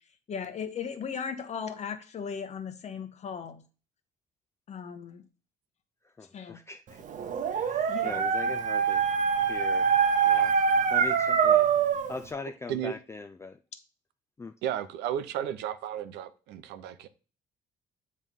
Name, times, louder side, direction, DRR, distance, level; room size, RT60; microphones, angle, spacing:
voice 1, 0.3-3.6 4.7-5.2 6.3-6.6 7.8-8.2, left 6 dB, 40° left, 1.2 m, -37 dB
voice 2, 6.2-7.0 7.7-9.0 9.5-9.8 10.2-10.5 10.9-11.7 12.1-13.6 14.4-14.5, left 3 dB, 15° left, 0.4 m, -40 dB
Dog, 7.1-12.2, right 7 dB, 50° right, 0.8 m, -24 dB
voice 3, 14.6-17.1, right 10 dB, 85° right, 0.7 m, -33 dB
7.4 x 3.3 x 5.3 m
cardioid pair, 110°, 17 cm